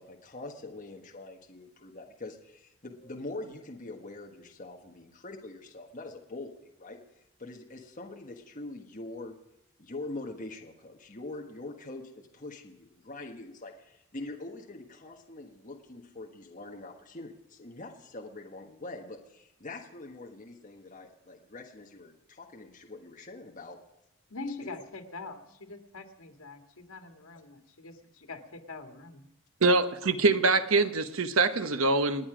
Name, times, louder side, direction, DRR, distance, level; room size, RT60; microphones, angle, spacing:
voice 1, 0.0-7.0 7.4-9.4 9.8-23.8 24.6-24.7, left 2 dB, 35° left, 1 dB, 1.4 m, -43 dB
voice 2, 24.3-29.2, left 3 dB, 90° left, 4 dB, 2.0 m, -43 dB
voice 3, 29.6-32.3, right 3 dB, 75° right, 10 dB, 1.0 m, -24 dB
28.5 x 9.5 x 5.0 m, 0.89 s
head